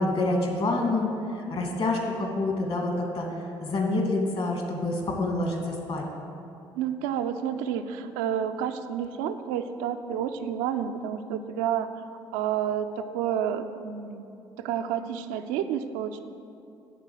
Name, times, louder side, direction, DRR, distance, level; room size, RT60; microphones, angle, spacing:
voice 1, 0.0-3.3 3.6-6.0, left 2 dB, 50° left, 1 dB, 2.2 m, -27 dB
voice 2, 6.7-12.0 12.3-14.2 14.6-16.2, right 9 dB, 75° right, 9 dB, 0.5 m, -30 dB
11.0 x 4.0 x 7.8 m, 2.7 s
hypercardioid pair, 55°, 13 cm